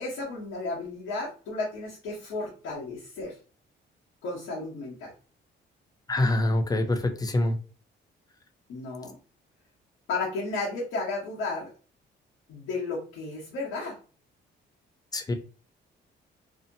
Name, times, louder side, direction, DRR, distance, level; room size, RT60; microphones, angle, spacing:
voice 1, 0.0-3.4 4.2-5.1 8.7-9.2 10.1-11.7 12.5-14.0, left 3 dB, 90° left, -6 dB, 1.0 m, -33 dB
voice 2, 6.1-7.6 15.1-15.3, left 1 dB, 20° left, 5 dB, 0.5 m, -25 dB
2.7 x 2.1 x 2.6 m, 0.37 s
cardioid pair, 90°, 20 cm